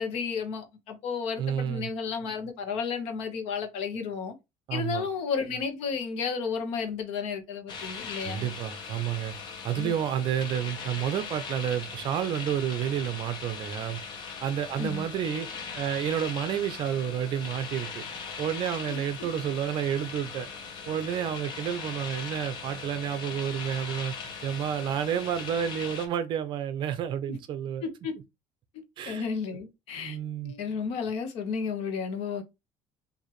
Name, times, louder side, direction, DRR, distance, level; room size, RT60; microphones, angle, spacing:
voice 1, 0.0-4.3 4.7-8.5 9.7-9.9 14.8-15.1 18.9-19.0 27.3-27.4 27.8-28.2 29.1-30.2 30.4-32.4, left 5 dB, 65° left, 1.1 m, -32 dB
voice 2, 1.4-1.9 4.7-5.1 8.2-9.3 9.6-14.0 14.4-15.5 15.8-18.1 18.4-20.5 20.9-24.1 24.4-27.8 29.0-29.3 30.0-30.5, right 9 dB, 45° right, 0.6 m, -30 dB
sound 1, 7.7-26.1, left 5 dB, 40° left, 1.0 m, -39 dB
4.6 x 2.8 x 3.0 m
cardioid pair, 170°, 12 cm